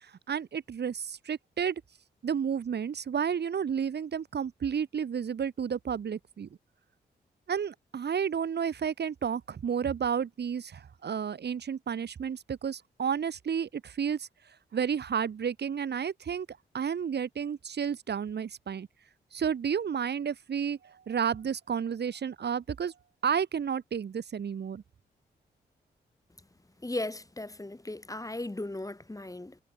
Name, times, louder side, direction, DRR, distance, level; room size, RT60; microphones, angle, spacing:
voice 1, 0.3-1.7 2.2-6.5 7.5-14.3 14.7-16.5 16.7-18.9 19.3-22.9 23.2-24.8, right 7 dB, 60° right, 1.5 m, -31 dB
voice 2, 26.8-29.6, left 2 dB, 20° left, 3.2 m, -37 dB
supercardioid pair, 45°, 19 cm